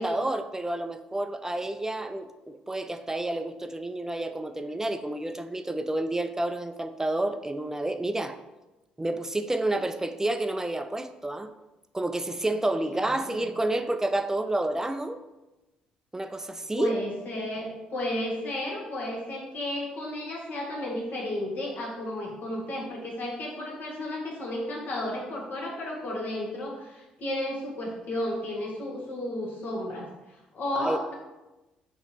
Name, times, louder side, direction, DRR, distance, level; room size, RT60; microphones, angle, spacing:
voice 1, 0.0-8.4 9.0-11.5 11.9-15.2 16.1-16.9 30.7-31.1, right 1 dB, 15° right, 9 dB, 0.4 m, -29 dB
voice 2, 12.9-13.5 16.8-31.1, left 1 dB, 50° left, -1 dB, 1.2 m, -33 dB
4.0 x 3.0 x 4.1 m, 1.0 s
hypercardioid pair, 50°, 4 cm